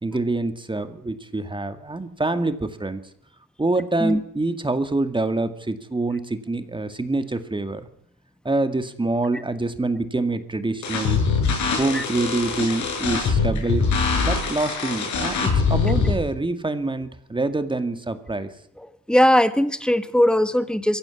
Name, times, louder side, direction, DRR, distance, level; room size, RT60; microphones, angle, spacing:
voice 1, 0.0-3.0 3.6-7.9 8.4-11.2 11.8-13.9 14.2-18.5, right 2 dB, 15° right, 9 dB, 2.2 m, -26 dB
sound 1, 10.8-16.1, left 5 dB, 70° left, 6.8 m, -23 dB
voice 2, 19.1-21.0, equal, 5° left, 12 dB, 1.7 m, -19 dB
22.0 x 15.5 x 8.4 m, 0.69 s
cardioid pair, 90°, 30 cm